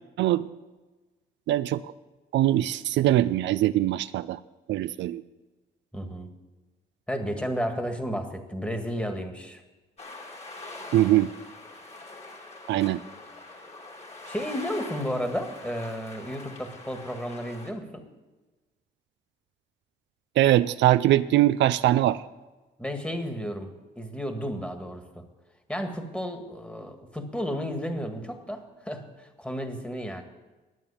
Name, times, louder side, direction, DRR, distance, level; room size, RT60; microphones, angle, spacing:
voice 1, 0.2-0.5 1.5-1.8 2.3-4.4 4.7-5.2 10.9-11.3 12.7-13.0 20.4-22.2, right 14 dB, 75° right, 14 dB, 0.4 m, -22 dB
voice 2, 5.9-6.3 7.1-9.6 14.3-18.0 22.8-23.7 24.0-25.3 25.7-30.2, equal, 5° left, 6 dB, 1.8 m, -32 dB
sound 1, 10.0-17.7, left 2 dB, 35° left, 2.5 m, -43 dB
10.5 x 9.2 x 8.5 m, 1.2 s
cardioid pair, 80°, 19 cm